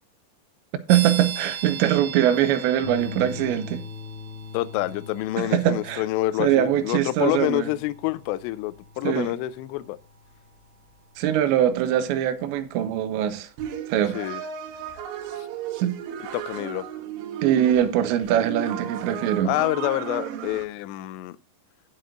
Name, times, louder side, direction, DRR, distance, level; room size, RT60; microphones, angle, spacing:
sound 1, 0.9-13.4, right 8 dB, 50° right, 2.3 m, -41 dB
voice 1, 0.9-3.8 5.4-6.0 6.4-7.7 9.0-9.3 11.2-13.5 13.9-14.2 15.8-16.0 17.4-19.5, right 11 dB, 90° right, 3.1 m, -22 dB
sound 2, 2.8-11.3, left 6 dB, 55° left, 2.4 m, -43 dB
voice 2, 4.5-10.0 14.1-14.4 15.4-15.5 16.3-16.9 19.4-21.4, left 17 dB, 85° left, 2.7 m, -27 dB
sound 3, 13.6-20.6, right 9 dB, 75° right, 3.1 m, -34 dB
18.0 x 6.0 x 2.5 m
omnidirectional pair, 5.1 m